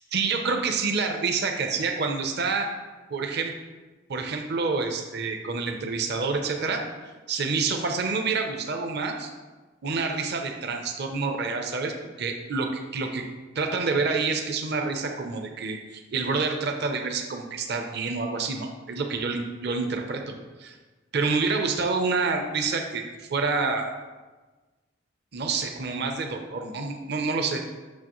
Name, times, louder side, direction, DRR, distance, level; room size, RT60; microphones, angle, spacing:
voice 1, 0.1-2.7 3.1-3.5 4.1-6.8 7.3-9.3 9.8-13.2 13.5-20.2 20.6-20.8 21.1-23.0 23.3-23.9 25.3-27.6, right 4 dB, 60° right, 3 dB, 0.7 m, -27 dB
8.5 x 6.4 x 3.1 m, 1.3 s
head